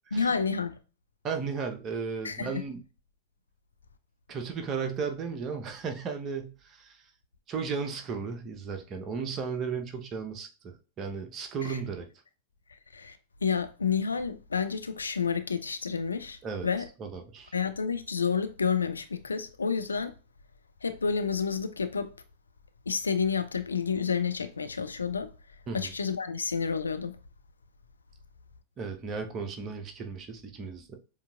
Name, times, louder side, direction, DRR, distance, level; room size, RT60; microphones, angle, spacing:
voice 1, 0.1-0.8 2.2-2.6 11.6-11.8 12.9-16.9 17.5-20.1 20.8-22.1 22.9-25.3 25.7-27.2, left 6 dB, 75° left, 0.3 m, -30 dB
voice 2, 1.2-2.8 4.3-7.0 7.5-12.1 16.4-16.7 17.0-17.5 25.7-25.9 28.8-31.0, right 5 dB, 30° right, 0.8 m, -35 dB
6.9 x 2.7 x 2.3 m
figure-of-eight pair, 90°, 0 cm